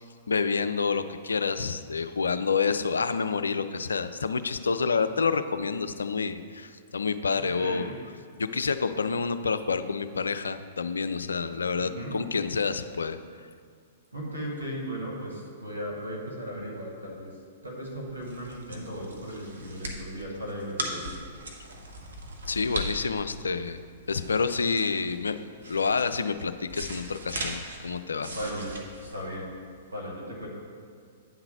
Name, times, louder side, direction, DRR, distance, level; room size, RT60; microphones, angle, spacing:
voice 1, 0.3-7.9 8.4-13.2 22.5-23.8 24.1-25.4 25.6-28.3, left 5 dB, 75° left, 10 dB, 0.4 m, -28 dB
voice 2, 7.6-7.9 11.8-12.1 14.1-17.3 17.6-21.1 28.3-29.5 29.9-30.5, equal, 90° right, -1 dB, 1.9 m, -36 dB
sound 1, 17.9-29.9, right 1 dB, 70° right, 1.1 m, -39 dB
9.5 x 3.9 x 5.6 m, 2.2 s
figure-of-eight pair, 110°, 0 cm